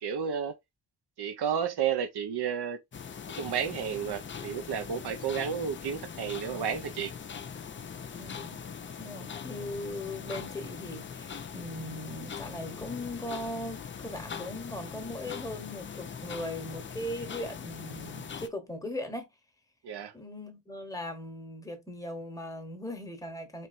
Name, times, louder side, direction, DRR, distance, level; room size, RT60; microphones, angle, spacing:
voice 1, 0.0-0.6 1.2-2.8 3.4-7.1 19.8-20.1, right 7 dB, 70° right, 1.0 m, -32 dB
sound 1, 2.9-18.5, left 7 dB, 30° left, 0.4 m, -41 dB
voice 2, 8.2-8.7 9.0-19.3 20.1-23.7, left 1 dB, 10° left, 1.1 m, -39 dB
4.4 x 3.3 x 2.6 m
wide cardioid pair, 155°, 40 cm